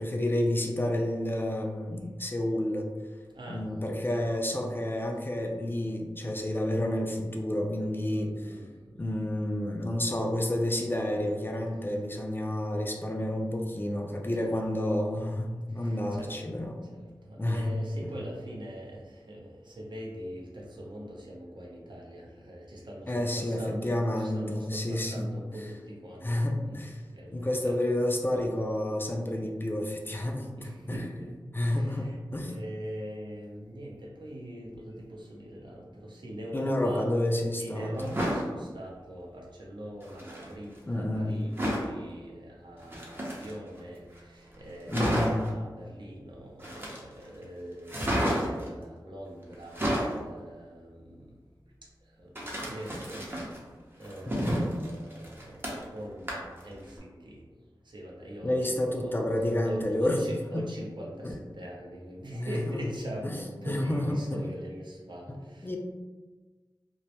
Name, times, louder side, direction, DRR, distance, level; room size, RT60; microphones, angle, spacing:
voice 1, 0.0-2.9 3.5-8.3 8.9-16.8 17.4-17.8 23.1-25.3 26.2-27.0 27.3-30.5 30.9-31.0 31.5-32.5 36.5-38.1 40.9-41.4 44.9-45.5 58.4-60.2 61.2-61.4 62.3-62.5 63.2-63.3 63.7-64.5 65.3-65.4 65.6-65.8, left 1 dB, 25° left, 1 dB, 0.3 m, -30 dB
voice 2, 3.3-4.2 8.1-8.9 14.5-14.6 15.8-16.3 16.9-26.3 26.6-26.8 27.1-27.8 30.6-37.1 37.6-51.3 52.2-52.3 52.6-53.3 54.0-57.4 57.8-65.8, equal, 65° right, -3 dB, 0.6 m, -42 dB
sound 1, 38.0-38.5 40.0-40.5 41.6-41.9 42.8-43.8 44.2-44.3 44.5-44.6 44.9-45.5 46.6-47.2 47.9-48.7 49.5-50.2 52.4-53.6 54.0-56.0 56.3-56.6 57.0-57.1, equal, 25° right, 0.6 m, -31 dB
2.2 x 2.0 x 2.8 m, 1.3 s
wide cardioid pair, 55°, 8 cm